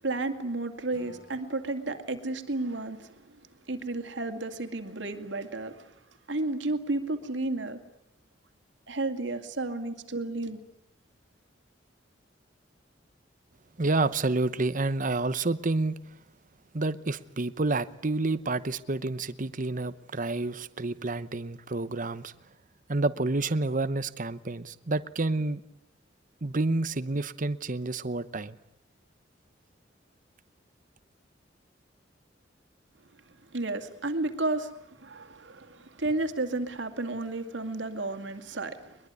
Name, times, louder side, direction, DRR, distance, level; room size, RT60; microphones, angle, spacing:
voice 1, 0.0-3.1 3.7-5.9 6.3-7.8 8.9-10.6 33.5-34.7 35.0-39.0, right 2 dB, 70° right, 2.3 m, -32 dB
Acoustic guitar / Strum, 0.9-4.1, left 2 dB, 80° left, 5.0 m, -60 dB
voice 2, 13.8-16.0 16.7-22.3 22.9-25.6 26.4-28.6, right 2 dB, 45° right, 1.0 m, -29 dB
22.5 x 22.0 x 9.6 m
head